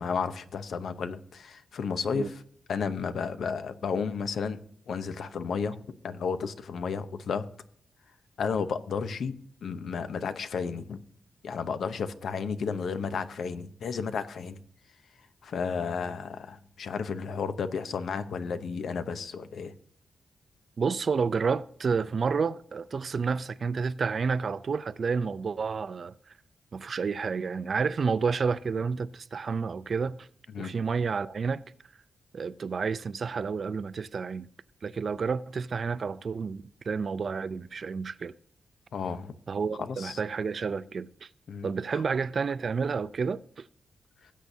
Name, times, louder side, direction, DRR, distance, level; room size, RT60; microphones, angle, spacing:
voice 1, 0.0-2.3 2.7-5.8 6.0-7.4 8.4-9.3 9.6-11.0 11.4-14.6 15.4-19.7 30.5-30.7 38.9-39.3 39.9-40.2 41.5-41.7, left 5 dB, 75° left, 0.8 m, -32 dB
voice 2, 20.8-26.1 26.7-30.3 30.6-31.6 32.3-34.5 34.8-38.3 39.5-41.3 41.6-43.7, right 5 dB, 50° right, 0.4 m, -30 dB
19.5 x 8.3 x 2.7 m
wide cardioid pair, 130°, 0 cm